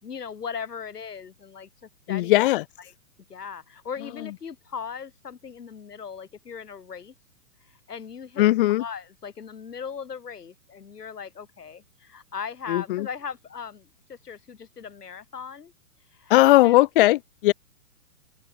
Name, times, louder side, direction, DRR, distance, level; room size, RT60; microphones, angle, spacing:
voice 1, 0.0-2.4 3.3-7.1 7.6-8.5 8.8-15.7 16.1-16.4 16.6-16.8, left 6 dB, 90° left, 5.1 m, -38 dB
voice 2, 2.1-2.6 8.4-8.8 12.7-13.1 16.3-17.5, left 17 dB, 35° left, 1.1 m, -18 dB
open air
hypercardioid pair, 150°, 46 cm